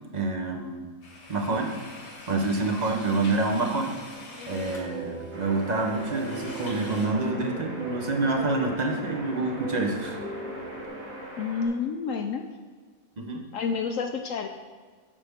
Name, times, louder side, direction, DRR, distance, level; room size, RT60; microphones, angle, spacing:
voice 1, 0.1-0.8 1.3-1.7 2.3-4.1 4.5-10.2 13.2-13.5, right 3 dB, 40° right, 2 dB, 0.6 m, -27 dB
sound 1, 1.0-7.1, left 2 dB, 85° left, 2.0 m, -45 dB
sound 2, 4.6-10.9, right 2 dB, 60° right, 2.1 m, -39 dB
sound 3, 5.3-11.7, equal, 80° right, 2.4 m, -41 dB
voice 2, 11.4-12.4 13.5-14.5, left 5 dB, 70° left, 5 dB, 0.8 m, -29 dB
8.4 x 6.9 x 3.5 m, 1.5 s
omnidirectional pair, 1.7 m